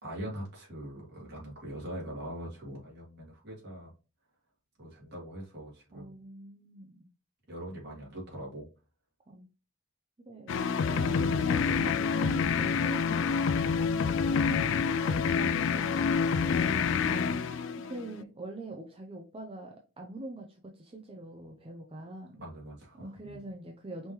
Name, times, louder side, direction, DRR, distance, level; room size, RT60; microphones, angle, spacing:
voice 1, 0.0-3.9 4.8-6.2 7.5-8.7 16.9-17.7 22.4-23.4, right 1 dB, 50° right, -3 dB, 2.2 m, -42 dB
voice 2, 5.9-7.1 9.3-9.5 10.2-13.5 14.2-16.7 17.8-22.4 23.0-24.1, right 2 dB, 25° right, 0 dB, 0.5 m, -44 dB
sound 1, 10.5-18.2, left 5 dB, 60° left, 0.3 m, -27 dB
5.3 x 3.0 x 3.1 m, 0.33 s
head